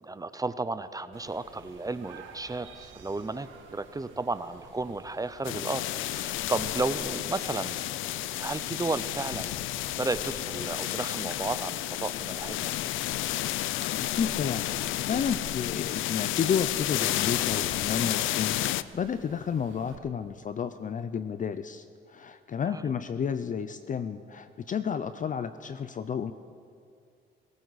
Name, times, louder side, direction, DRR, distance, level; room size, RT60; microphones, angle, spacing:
voice 1, 0.0-9.6 9.9-12.8 22.7-22.9, right 3 dB, 20° right, 13 dB, 0.6 m, -33 dB
sound 1, 1.1-20.0, right 4 dB, 75° right, 1.8 m, -50 dB
sound 2, 5.4-18.8, left 15 dB, 85° left, 0.4 m, -31 dB
voice 2, 14.0-26.3, left 7 dB, 40° left, 11 dB, 0.5 m, -31 dB
19.0 x 17.5 x 4.1 m, 2.3 s
cardioid pair, 90°, 20 cm